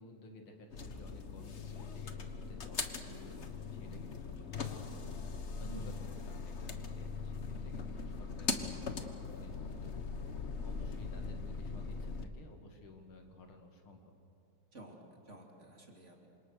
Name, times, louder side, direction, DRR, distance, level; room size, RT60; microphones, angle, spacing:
voice 1, 0.0-14.1, left 2 dB, 85° left, 4 dB, 3.1 m, -55 dB
sound 1, 0.7-12.2, left 4 dB, 40° left, 1.3 m, -40 dB
voice 2, 5.6-6.1 14.7-16.3, right 2 dB, 35° right, 1 dB, 3.1 m, -52 dB
27.5 x 25.5 x 6.6 m, 2.6 s
omnidirectional pair, 2.3 m